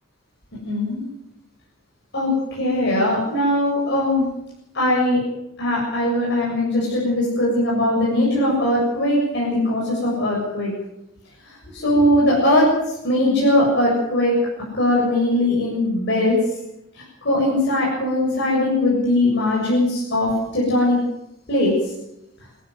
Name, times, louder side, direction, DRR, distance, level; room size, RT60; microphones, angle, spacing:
voice 1, 0.7-1.0 2.1-4.3 4.7-5.2 5.6-10.7 11.4-14.4 14.7-16.4 16.9-21.0 21.5-21.7, left 1 dB, 55° left, -4 dB, 7.4 m, -20 dB
27.5 x 13.0 x 7.9 m, 0.84 s
head